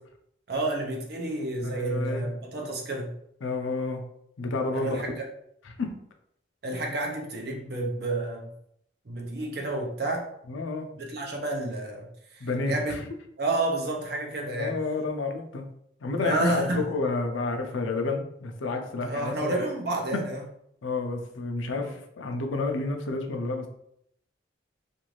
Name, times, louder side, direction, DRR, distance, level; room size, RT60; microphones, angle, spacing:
voice 1, 0.5-3.1 4.7-5.2 6.6-8.5 9.0-10.3 10.9-13.0 13.4-14.7 16.2-17.0 19.0-20.4 21.8-21.9, right 2 dB, 55° right, 1 dB, 0.6 m, -30 dB
voice 2, 1.7-2.3 3.4-4.0 4.4-5.0 5.8-5.9 10.5-10.9 12.4-13.0 14.6-15.6 16.0-19.5 20.8-23.7, left 3 dB, 90° left, 4 dB, 0.5 m, -30 dB
2.6 x 2.4 x 3.1 m, 0.72 s
head